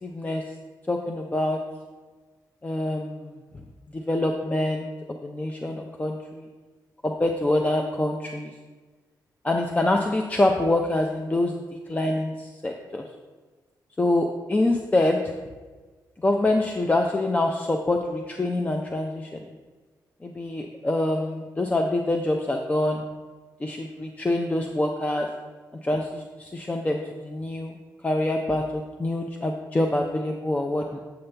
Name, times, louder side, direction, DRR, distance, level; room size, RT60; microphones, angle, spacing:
voice 1, 0.0-0.4 0.9-1.6 2.6-3.4 3.9-4.9 5.2-6.4 7.0-8.5 9.4-11.6 11.9-13.0 14.0-15.3 16.2-19.5 20.2-23.0 23.6-25.3 25.8-27.8 28.0-31.0, left 1 dB, 20° left, 2 dB, 0.5 m, -25 dB
7.8 x 5.5 x 3.3 m, 1.3 s
cardioid pair, 85°, 7 cm